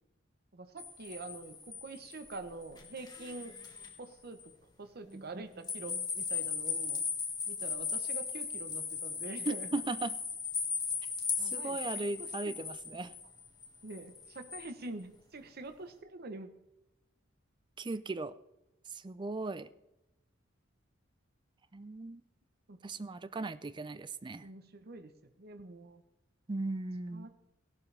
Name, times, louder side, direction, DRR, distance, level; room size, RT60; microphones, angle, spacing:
voice 1, 0.5-3.5 4.0-4.5 4.8-7.0 7.5-9.7 11.4-12.1 12.5-12.6 13.8-16.5 22.7-22.8 24.4-25.1 25.4-26.0 27.1-27.3, right 3 dB, 50° right, 8 dB, 0.9 m, -45 dB
sound 1, 0.8-4.0 4.4-4.5 5.6-14.7, left 5 dB, 20° left, 1.7 m, -38 dB
voice 2, 5.1-5.5 5.9-6.0 9.5-10.2 11.4-13.1 17.8-18.3 18.9-19.7 21.7-22.2 22.8-24.5 26.5-27.3, right 3 dB, 25° right, 14 dB, 0.4 m, -38 dB
16.0 x 11.5 x 3.3 m, 0.91 s
head